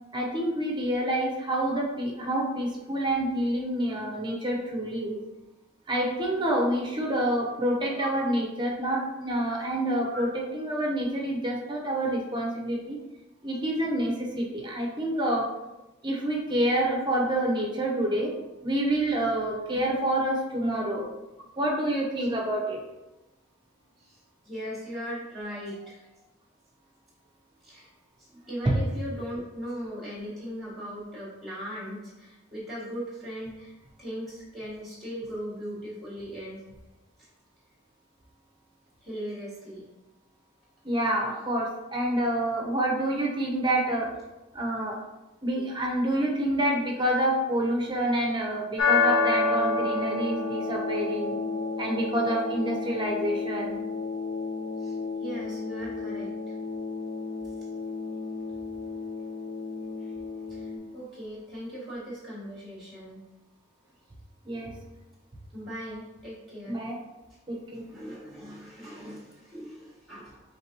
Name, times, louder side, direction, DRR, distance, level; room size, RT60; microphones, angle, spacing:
voice 1, 0.1-5.2 5.9-10.3 10.5-13.0 13.4-15.5 16.0-18.3 18.6-21.1 21.6-22.8 40.8-44.1 44.5-45.0 45.4-51.4 51.8-53.8 64.4-64.7 66.7-67.0 67.5-67.9, right 1 dB, 25° right, -1 dB, 0.8 m, -27 dB
voice 2, 24.0-26.2 27.6-27.9 28.2-33.7 34.0-36.6 37.2-37.3 39.0-39.9 54.8-56.6 57.4-57.7 60.0-60.1 60.5-63.2 65.5-66.9 67.7-70.4, equal, ahead, -7 dB, 1.2 m, -39 dB
sound 1, 48.8-60.8, left 4 dB, 80° left, 0.8 m, -30 dB
4.7 x 3.3 x 2.8 m, 1.0 s
head